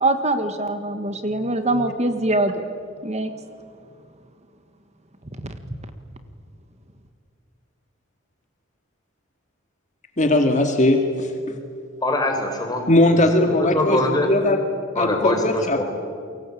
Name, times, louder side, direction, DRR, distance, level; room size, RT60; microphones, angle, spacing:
voice 1, 0.0-2.6 3.0-3.3, right 2 dB, 35° right, 8 dB, 1.6 m, -23 dB
voice 2, 10.2-11.6 12.9-14.6 14.9-15.8, left 1 dB, 40° left, 5 dB, 2.2 m, -19 dB
voice 3, 12.0-12.8 13.1-13.3 13.6-14.3 14.9-15.8, left 2 dB, 20° left, 3 dB, 4.8 m, -23 dB
29.5 x 23.5 x 8.6 m, 2.3 s
head